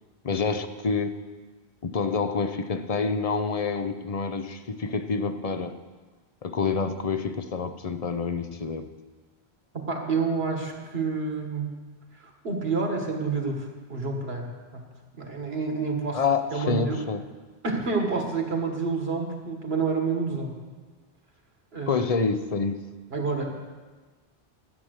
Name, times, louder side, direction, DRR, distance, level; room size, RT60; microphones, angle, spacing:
voice 1, 0.2-1.2 1.8-5.7 6.4-8.9 16.1-17.2 21.9-22.8, left 4 dB, 40° left, 9 dB, 0.7 m, -27 dB
voice 2, 9.7-11.8 12.1-14.9 15.2-16.2 16.5-17.0 17.6-20.6 21.7-22.0 23.1-23.6, right 4 dB, 65° right, 2 dB, 1.9 m, -29 dB
13.0 x 8.6 x 6.5 m, 1.4 s
omnidirectional pair, 1.1 m